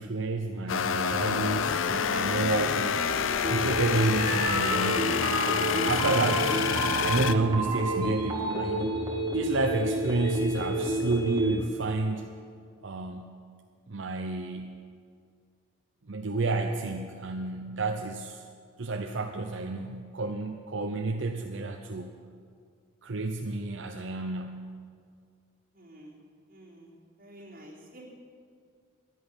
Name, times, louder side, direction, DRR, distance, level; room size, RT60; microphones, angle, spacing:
voice 1, 0.0-3.0 3.5-5.1 5.8-6.6 7.0-8.9 9.3-12.3 12.8-13.4 13.9-14.7 16.1-18.5 18.8-22.2 23.0-24.7, right 3 dB, 70° right, 4 dB, 0.7 m, -30 dB
sound 1, 0.7-7.3, left 6 dB, 80° left, 0.6 m, -27 dB
sound 2, 3.4-11.6, right 1 dB, 20° right, 2.0 m, -30 dB
voice 2, 25.7-26.2 26.5-26.9 27.2-28.0, right 1 dB, 45° right, -4 dB, 3.8 m, -49 dB
11.0 x 11.0 x 9.9 m, 2.2 s
head